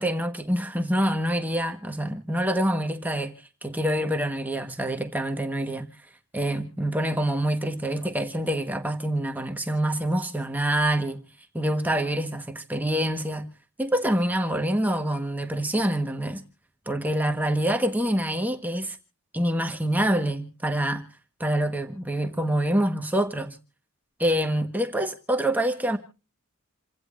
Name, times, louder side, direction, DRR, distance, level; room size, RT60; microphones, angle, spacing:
voice 1, 0.0-6.0 6.3-11.2 11.5-13.5 13.8-16.4 16.9-19.0 19.3-21.1 21.4-23.6 24.2-26.0, right 1 dB, 10° right, 1.3 m, -26 dB
28.5 x 17.0 x 2.5 m
head